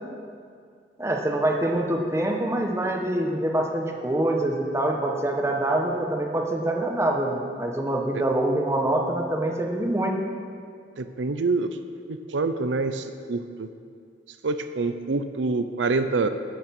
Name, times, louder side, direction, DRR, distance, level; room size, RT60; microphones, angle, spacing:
voice 1, 1.0-10.1, right 1 dB, 15° right, 1 dB, 1.2 m, -25 dB
voice 2, 11.0-11.8 12.1-13.7 14.4-16.3, right 3 dB, 90° right, 9 dB, 0.6 m, -26 dB
12.5 x 9.6 x 6.0 m, 2.2 s
head